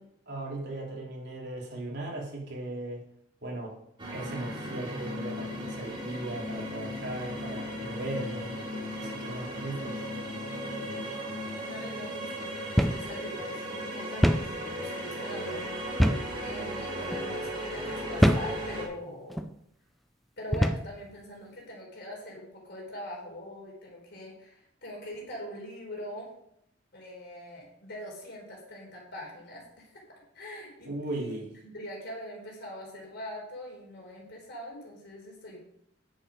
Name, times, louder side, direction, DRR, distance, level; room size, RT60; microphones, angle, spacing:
voice 1, 0.0-3.0 3.4-3.8 4.1-8.5 9.0-10.0 30.8-31.5, right 2 dB, 55° right, -3 dB, 3.3 m, -37 dB
sound 1, 4.0-18.8, equal, 25° right, 2.7 m, -36 dB
voice 2, 11.6-15.6 16.4-19.5 20.4-26.3 26.9-31.4 31.6-35.6, left 1 dB, 55° left, -1 dB, 4.1 m, -42 dB
sound 2, 12.8-13.1 13.4-13.5 14.2-14.5 16.0-16.3 17.0-17.2 18.2-18.5 19.3-19.5 20.5-20.9, equal, ahead, 0.4 m, -24 dB
10.0 x 8.1 x 5.2 m, 0.74 s
head